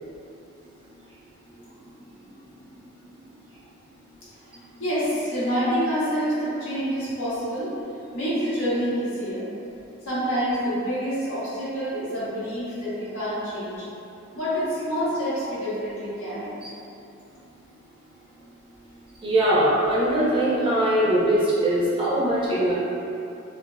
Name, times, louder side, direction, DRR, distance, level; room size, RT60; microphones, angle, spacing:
voice 1, 4.8-7.7 8.1-9.5 10.0-13.8 14.3-16.5, equal, 80° left, -11 dB, 1.4 m, -27 dB
voice 2, 19.2-22.7, right 1 dB, 25° right, -9 dB, 0.8 m, -21 dB
3.6 x 2.7 x 2.4 m, 2.7 s
head